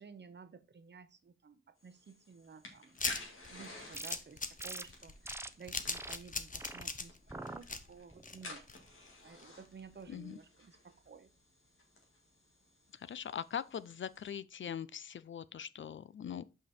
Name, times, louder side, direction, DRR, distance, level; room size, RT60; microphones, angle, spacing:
voice 1, 0.0-3.0 3.5-8.9 9.2-11.3, right 5 dB, 55° right, 0.8 m, -54 dB
sound 1, 1.8-14.3, left 2 dB, 90° left, 1.9 m, -53 dB
sound 2, 3.0-9.1 9.4-9.5 9.8-9.9, left 4 dB, 40° left, 0.9 m, -40 dB
sound 3, 3.9-4.2 4.6-4.8 5.2-5.5 5.9-6.2 6.6-6.8 7.3-7.6 8.1-8.5, right 2 dB, 10° right, 0.6 m, -44 dB
voice 2, 10.1-10.4 12.9-16.4, left 8 dB, 65° left, 0.4 m, -42 dB
5.6 x 5.0 x 4.2 m
cardioid pair, 55°, 21 cm